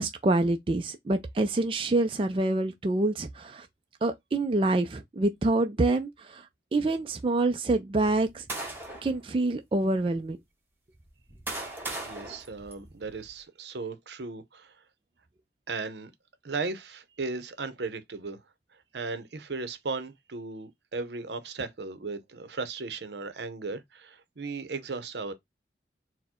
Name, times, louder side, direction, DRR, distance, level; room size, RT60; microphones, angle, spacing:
voice 1, 0.0-3.7 4.0-6.4 6.7-8.4 9.0-10.4, right 2 dB, 30° right, 0.3 m, -26 dB
sound 1, 8.0-9.2 9.9-10.0 10.9-13.3, right 2 dB, 10° right, 1.0 m, -38 dB
voice 2, 12.1-14.7 15.7-16.1 16.4-18.4 18.9-25.3, right 3 dB, 75° right, 0.7 m, -36 dB
4.3 x 2.1 x 4.2 m
head